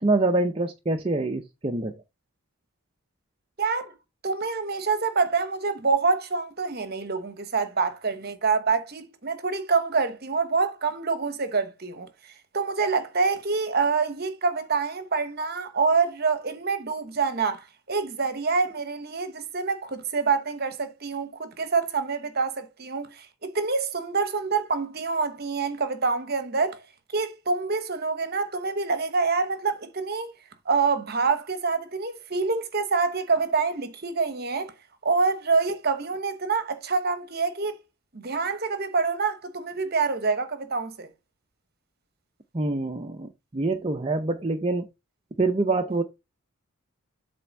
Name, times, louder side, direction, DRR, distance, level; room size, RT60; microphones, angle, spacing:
voice 1, 0.0-2.0 42.5-44.9 45.4-46.0, right 2 dB, 25° right, 0.5 m, -25 dB
voice 2, 3.6-3.9 4.2-12.1 12.5-26.8 27.1-30.3 30.7-34.7 35.0-37.8 38.1-41.1, right 4 dB, 45° right, 1.0 m, -26 dB
7.7 x 3.4 x 5.2 m
head